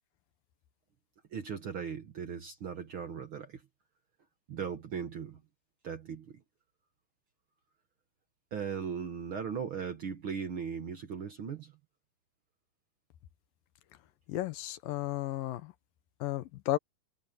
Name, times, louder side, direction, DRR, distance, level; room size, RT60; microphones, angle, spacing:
voice 1, 1.3-3.6 4.5-5.4 5.8-6.4 8.5-11.7, right 7 dB, 55° right, 1.6 m, -38 dB
voice 2, 14.3-15.7 16.2-16.8, left 16 dB, 90° left, 2.8 m, -33 dB
omnidirectional pair, 3.9 m